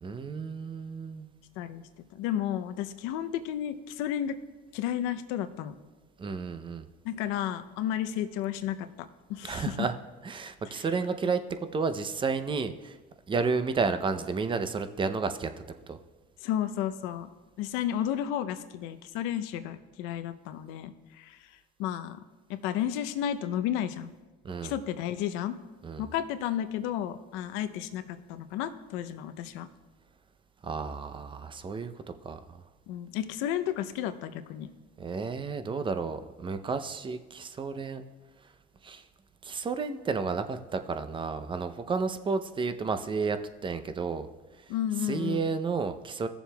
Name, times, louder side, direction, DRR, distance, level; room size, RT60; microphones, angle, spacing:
voice 1, 0.0-1.3 6.2-6.9 9.4-9.9 10.2-13.0 13.3-15.5 15.9-16.0 24.4-24.7 25.8-26.1 30.6-31.9 32.2-32.6 35.0-38.0 38.8-39.0 39.4-44.3 45.0-46.3, right 4 dB, 25° right, 10 dB, 0.6 m, -31 dB
voice 2, 2.1-4.4 4.7-5.7 7.0-9.7 10.7-10.8 16.4-17.3 17.6-21.4 21.8-22.2 22.5-24.1 24.6-25.6 26.0-29.7 32.9-34.7 44.7-45.5, left 10 dB, 80° left, 11 dB, 0.6 m, -32 dB
16.0 x 7.0 x 2.3 m, 1.3 s
supercardioid pair, 100°, 20 cm